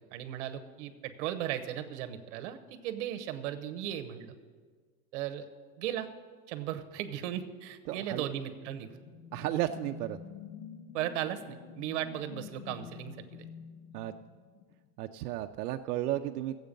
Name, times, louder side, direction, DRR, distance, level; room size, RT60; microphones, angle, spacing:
voice 1, 0.0-4.3 5.1-5.4 5.8-6.1 6.5-8.9 10.9-13.5, right 11 dB, 50° right, 8 dB, 1.0 m, -36 dB
voice 2, 7.9-8.3 9.3-10.2 13.9-14.1 15.0-16.6, right 13 dB, 80° right, 7 dB, 0.6 m, -33 dB
sound 1, 8.6-14.9, left 6 dB, 65° left, 0.9 m, -48 dB
15.5 x 8.0 x 5.2 m, 1.5 s
supercardioid pair, 175°, 45 cm